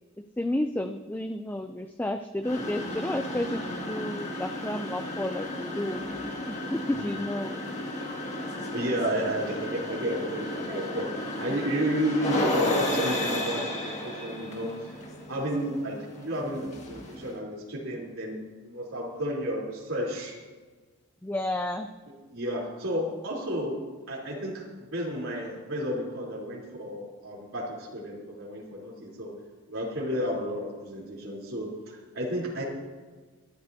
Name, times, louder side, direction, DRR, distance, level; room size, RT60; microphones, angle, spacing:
voice 1, 0.4-6.0 6.5-7.6 21.2-21.9, left 1 dB, 10° left, 7 dB, 0.4 m, -31 dB
sound 1, 2.4-17.4, left 1 dB, 35° left, 2.0 m, -33 dB
voice 2, 8.7-14.9 15.3-18.4 18.6-20.4 22.3-23.8 24.1-29.3 29.7-32.6, equal, 70° right, -5 dB, 3.5 m, -32 dB
24.5 x 12.5 x 2.8 m, 1.4 s
head